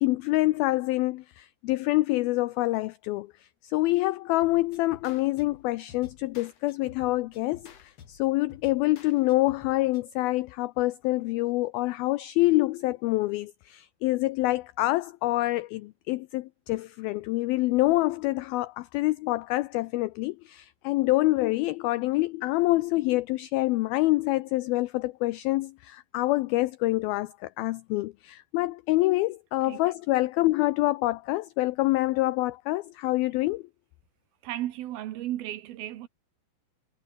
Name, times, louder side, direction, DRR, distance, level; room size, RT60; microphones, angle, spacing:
voice 1, 0.0-3.3 3.6-33.6, left 19 dB, 90° left, 2.1 m, -26 dB
sound 1, 4.4-10.0, left 8 dB, 45° left, 2.6 m, -51 dB
voice 2, 34.4-36.1, right 13 dB, 70° right, 2.8 m, -34 dB
omnidirectional pair, 5.0 m